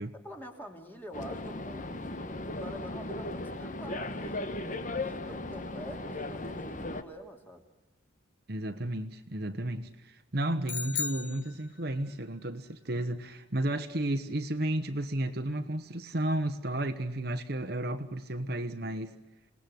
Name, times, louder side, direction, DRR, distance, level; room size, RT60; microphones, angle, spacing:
voice 1, 0.1-4.5 4.9-7.6, equal, 10° left, 3.0 m, -46 dB
sound 1, 1.1-7.0, left 2 dB, 40° left, 1.3 m, -37 dB
voice 2, 8.5-19.1, right 1 dB, 50° right, 1.2 m, -33 dB
sound 2, 10.7-12.1, left 6 dB, 60° left, 1.6 m, -36 dB
27.0 x 19.0 x 7.9 m
head